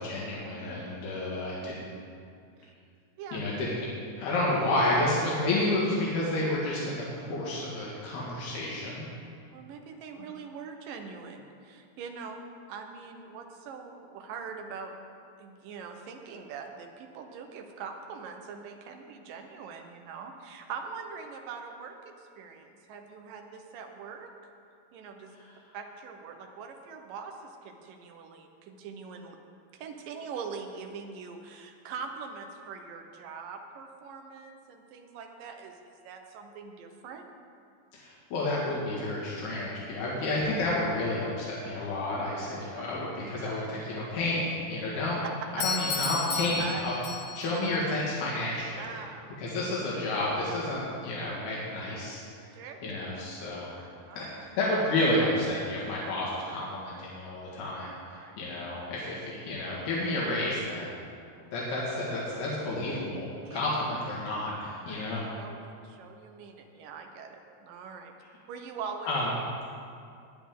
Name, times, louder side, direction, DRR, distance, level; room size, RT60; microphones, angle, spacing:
voice 1, 0.0-1.9 3.3-3.8 4.2-9.1 10.2-10.3 37.9-45.2 45.5-46.9 47.4-48.8 49.4-52.2 52.8-60.9 61.5-65.2 69.1-69.3, left 2 dB, 80° left, -6 dB, 3.7 m, -30 dB
voice 2, 9.5-14.9 15.4-24.3 24.9-25.4 25.7-29.4 29.7-37.3 46.6-46.8 48.8-49.4 52.5-52.8 54.1-54.2 58.0-58.4 61.3-61.5 63.5-63.6 64.9-65.0 65.4-68.1 68.5-69.1, right 5 dB, 70° right, 4 dB, 2.4 m, -42 dB
Doorbell, 45.6-47.6, left 4 dB, 60° left, 2.4 m, -32 dB
18.0 x 10.0 x 3.7 m, 2.4 s
omnidirectional pair, 4.4 m